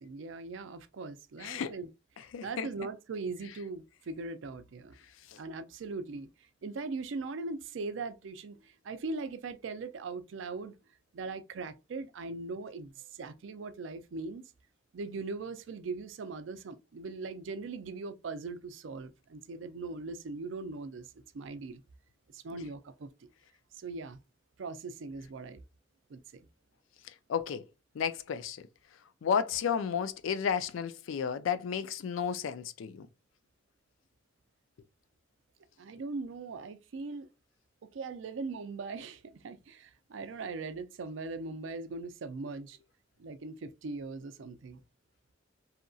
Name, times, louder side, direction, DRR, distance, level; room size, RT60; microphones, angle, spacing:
voice 1, 0.0-1.9 2.4-4.9 5.4-6.3 6.6-10.8 11.1-12.9 13.2-14.4 14.9-21.1 21.3-21.8 22.3-23.1 23.8-24.2 24.6-25.6 26.1-26.4 35.8-37.3 37.8-42.8 43.2-44.8, right 3 dB, 70° right, 0.4 m, -40 dB
voice 2, 1.4-1.7 2.3-2.7 27.3-27.6 28.0-28.6 29.2-33.1, left 7 dB, 85° left, 0.4 m, -32 dB
2.8 x 2.5 x 2.3 m
head